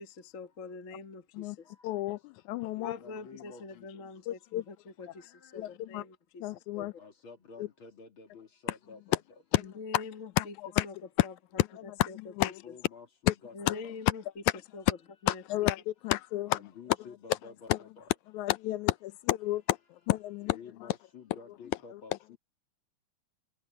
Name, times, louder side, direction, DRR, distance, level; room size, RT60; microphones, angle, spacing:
voice 1, 0.0-1.7 2.8-6.9 9.6-10.5 10.8-10.9 11.2-11.3 12.1-12.2 12.4-12.5 13.5-14.2 14.7-14.8 15.2-15.4, left 4 dB, 65° left, 0.7 m, -44 dB
voice 2, 1.8-2.9 4.3-4.6 5.5-6.0 6.4-6.9 7.6-7.7 9.5-9.6 9.9-10.0 10.4-10.9 11.2-11.3 11.6-12.6 13.3-13.4 13.7-13.8 15.3-16.6 17.7-17.8 18.3-21.0 21.9-22.0, left 17 dB, 85° left, 2.0 m, -30 dB
voice 3, 2.7-4.0 5.0-5.6 7.0-9.2 12.6-13.9 16.4-18.0 20.5-22.4, left 5 dB, 45° left, 3.2 m, -51 dB
omnidirectional pair, 3.4 m